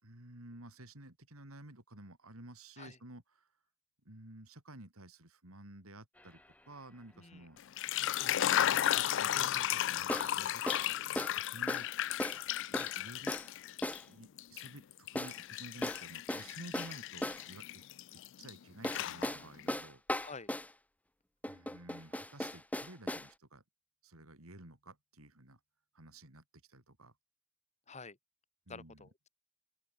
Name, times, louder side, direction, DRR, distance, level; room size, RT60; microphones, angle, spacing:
voice 1, 0.0-3.5 4.0-6.4 6.7-7.6 8.2-10.8 11.3-11.9 12.7-13.4 14.1-17.8 18.1-20.0 21.5-23.6 24.0-25.6 25.9-27.1 28.7-29.1, right 1 dB, 80° right, 4.6 m, -53 dB
sound 1, 6.2-6.3 10.1-10.3 10.7-10.9 11.2-11.4 11.7-11.9 12.2-12.4 12.7-13.0 13.3-13.5 13.8-14.1 15.2-15.4 15.8-17.5 18.8-20.7 21.4-23.3, left 1 dB, 5° left, 1.7 m, -37 dB
sound 2, 7.6-14.0 14.4-18.5 18.8-19.7, left 12 dB, 60° left, 0.4 m, -34 dB
voice 2, 20.2-20.5 27.9-28.2 28.7-29.3, left 4 dB, 30° left, 1.8 m, -49 dB
open air
head